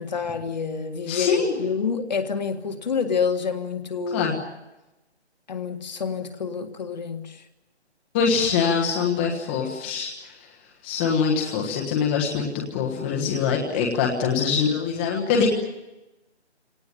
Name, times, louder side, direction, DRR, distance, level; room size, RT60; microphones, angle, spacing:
voice 1, 0.0-4.3 5.5-7.4, left 5 dB, 40° left, 7 dB, 1.8 m, -28 dB
voice 2, 1.1-1.5 4.1-4.4 8.1-10.5 10.8-15.5, left 6 dB, 10° left, -1 dB, 1.4 m, -24 dB
25.5 x 18.5 x 9.1 m, 1.0 s
hypercardioid pair, 170°, 34 cm